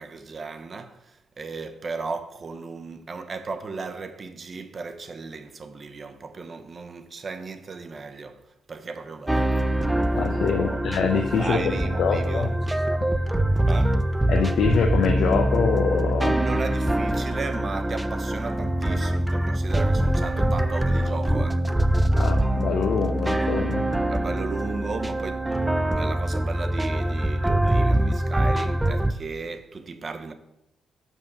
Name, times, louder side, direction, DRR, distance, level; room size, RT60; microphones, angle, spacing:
voice 1, 0.0-9.6 10.5-10.8 11.4-12.9 13.6-14.0 16.2-21.7 24.1-25.5 25.9-30.3, right 4 dB, 40° right, 0.7 m, -35 dB
sound 1, 9.3-29.1, right 1 dB, 10° right, 0.4 m, -24 dB
voice 2, 10.1-11.7 12.0-12.5 14.3-16.4 22.2-23.9, left 6 dB, 70° left, 0.6 m, -24 dB
5.4 x 5.3 x 6.0 m
cardioid pair, 90°, 0 cm